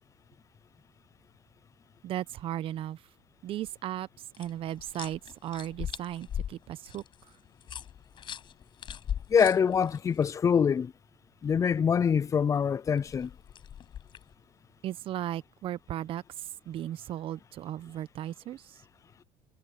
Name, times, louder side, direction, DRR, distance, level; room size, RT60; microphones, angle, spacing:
voice 1, 2.0-3.0 3.4-4.1 4.4-7.0 14.8-18.8, right 12 dB, 55° right, 1.0 m, -36 dB
sound 1, 4.3-10.3 12.9-14.3, left 9 dB, 50° left, 6.6 m, -40 dB
voice 2, 9.3-10.9 11.4-13.3, left 7 dB, 30° left, 0.5 m, -24 dB
supercardioid pair, 90°, 11 cm